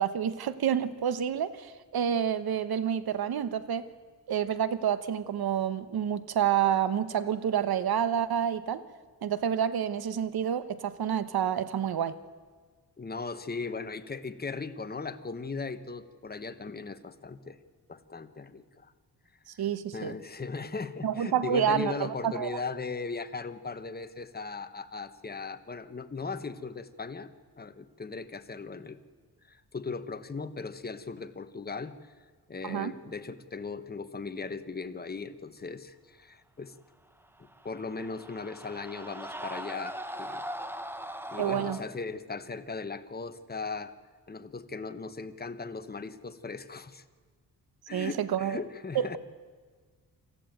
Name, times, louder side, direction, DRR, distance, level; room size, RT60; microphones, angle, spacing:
voice 1, 0.0-3.9 4.3-8.8 9.2-12.2 19.5-20.2 21.0-22.5 32.6-32.9 41.4-41.8 47.9-48.6 48.9-49.2, right 9 dB, 70° right, 14 dB, 1.1 m, -28 dB
voice 2, 13.0-17.6 17.9-18.9 19.9-29.0 29.4-31.9 32.5-36.7 37.6-40.4 41.3-43.9 44.3-47.0 47.9-49.2, left 4 dB, 25° left, 10 dB, 1.2 m, -38 dB
sound 1, 37.4-41.8, equal, 5° right, 1.2 m, -40 dB
25.5 x 14.0 x 9.2 m, 1.5 s
cardioid pair, 90°, 39 cm